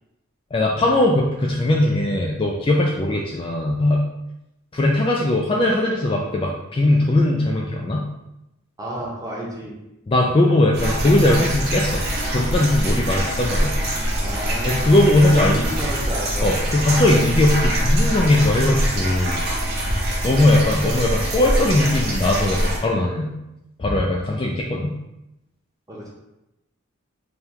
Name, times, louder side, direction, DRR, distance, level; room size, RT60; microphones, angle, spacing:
voice 1, 0.5-4.0 4.7-8.0 10.1-12.0 12.3-13.8 14.6-15.7 16.4-19.4 20.2-23.3 23.8-24.9, left 1 dB, 25° left, -2 dB, 0.3 m, -19 dB
voice 2, 8.8-9.8 14.2-15.0 15.2-16.5 25.9-26.1, equal, 15° right, -4 dB, 0.9 m, -31 dB
sound 1, 10.7-22.8, equal, 50° right, 0.9 m, -23 dB
3.5 x 2.3 x 4.4 m, 0.90 s
head